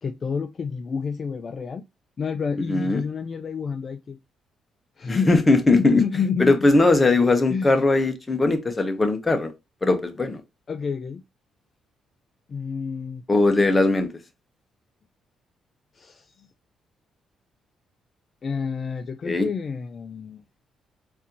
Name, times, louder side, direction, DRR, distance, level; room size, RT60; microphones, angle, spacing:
voice 1, 0.0-1.8 2.2-4.2 5.0-5.3 5.7-6.7 7.5-7.8 10.7-11.2 12.5-13.2 15.9-16.5 18.4-20.4, left 6 dB, 45° left, 0.3 m, -29 dB
voice 2, 2.7-3.0 5.1-6.0 6.4-9.5 9.8-10.4 13.3-14.1 19.2-19.5, left 2 dB, 20° left, 0.7 m, -19 dB
4.1 x 2.5 x 2.7 m
cardioid pair, 90°, 0 cm